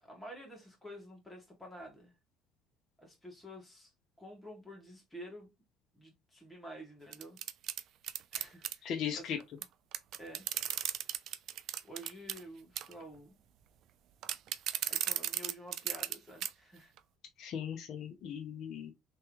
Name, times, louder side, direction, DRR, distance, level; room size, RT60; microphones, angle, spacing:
voice 1, 0.0-2.1 3.0-3.9 4.2-5.5 5.9-7.4 8.3-9.3 10.2-10.5 11.8-13.4 14.9-16.9, equal, 10° left, 1.8 m, -50 dB
sound 1, 7.1-8.7 9.6-9.7 9.9-12.4 12.8-13.0 14.2-16.2 16.4-16.5 17.0-17.1, right 11 dB, 55° right, 0.4 m, -35 dB
voice 2, 8.8-9.4 17.4-18.9, left 8 dB, 55° left, 0.8 m, -38 dB
3.5 x 3.1 x 3.1 m
cardioid pair, 135°, 0 cm